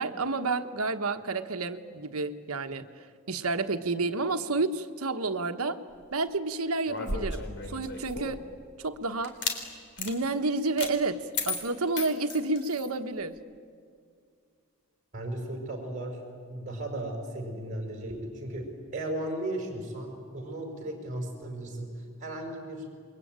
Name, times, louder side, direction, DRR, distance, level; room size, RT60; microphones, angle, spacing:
voice 1, 0.0-2.8 3.3-5.8 6.1-8.4 8.8-9.3 10.0-13.3, right 3 dB, 85° right, 8 dB, 1.3 m, -30 dB
sound 1, 6.9-8.5 9.2-9.6 10.0-10.1 10.8-10.9 11.3-12.9, left 4 dB, 55° left, 3.6 m, -34 dB
voice 2, 15.1-16.2 16.5-22.9, right 1 dB, 35° right, 2 dB, 4.8 m, -36 dB
28.5 x 22.5 x 9.0 m, 2.2 s
head